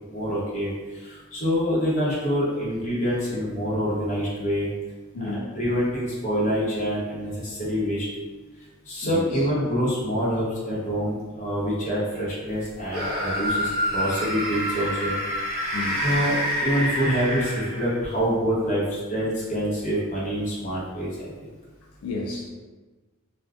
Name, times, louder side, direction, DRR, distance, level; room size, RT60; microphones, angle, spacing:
voice 1, 0.1-4.7 5.2-8.1 8.6-15.2 16.0-21.5, equal, 35° left, -8 dB, 0.8 m, -26 dB
voice 2, 5.1-5.5 9.0-9.2 15.7-16.1 22.0-22.5, left 2 dB, 85° left, -1 dB, 0.4 m, -31 dB
sound 1, 12.9-18.1, equal, 45° right, 0.7 m, -27 dB
2.4 x 2.2 x 2.3 m, 1.3 s
head